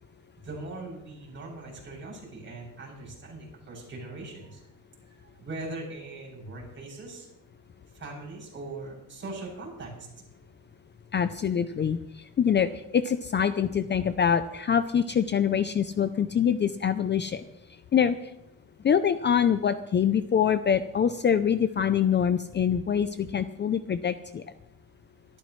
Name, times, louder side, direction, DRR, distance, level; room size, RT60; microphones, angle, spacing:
voice 1, 0.4-4.6 5.1-7.3 7.9-10.2, right 2 dB, 35° right, -3 dB, 7.5 m, -40 dB
voice 2, 11.1-17.4 17.9-18.2 18.8-24.4, left 8 dB, 30° left, 11 dB, 0.5 m, -25 dB
24.0 x 13.5 x 3.2 m, 0.87 s
cardioid pair, 140°, 34 cm